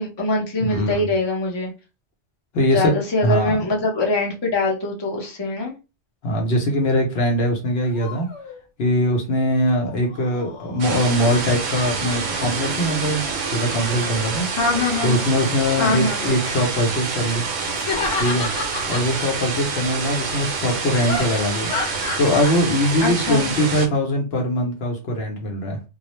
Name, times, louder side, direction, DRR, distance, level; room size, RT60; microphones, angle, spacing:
voice 1, 0.0-1.7 2.7-5.7 14.6-15.2 15.8-16.2 23.0-23.5, left 2 dB, 30° left, -1 dB, 0.6 m, -23 dB
voice 2, 0.6-1.1 2.5-3.0 3.2-3.6 6.2-8.3 8.8-13.2 13.5-14.5 15.0-17.4 18.2-18.5 18.9-21.7 22.2-25.8, equal, 65° left, 1 dB, 0.8 m, -21 dB
sound 1, 7.8-8.6 9.9-11.6 12.9-13.3 13.6-14.3 17.7-19.1 21.1-22.6, left 3 dB, 85° left, 1.0 m, -31 dB
sound 2, 10.8-16.6, right 4 dB, 30° right, 0.4 m, -38 dB
sound 3, 10.8-23.9, right 4 dB, 70° right, 0.8 m, -27 dB
2.3 x 2.0 x 2.9 m, 0.29 s
omnidirectional pair, 1.2 m